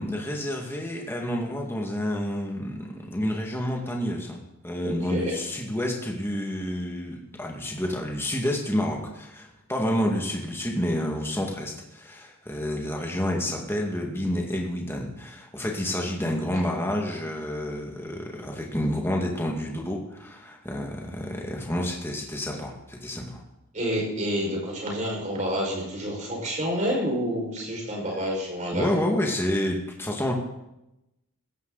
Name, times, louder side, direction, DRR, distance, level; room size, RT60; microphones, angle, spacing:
voice 1, 0.0-23.4 28.7-30.3, left 1 dB, 10° left, 0 dB, 2.0 m, -29 dB
voice 2, 4.8-5.4 23.7-28.8, equal, 35° right, -2 dB, 5.5 m, -28 dB
17.0 x 14.0 x 4.1 m, 0.90 s
head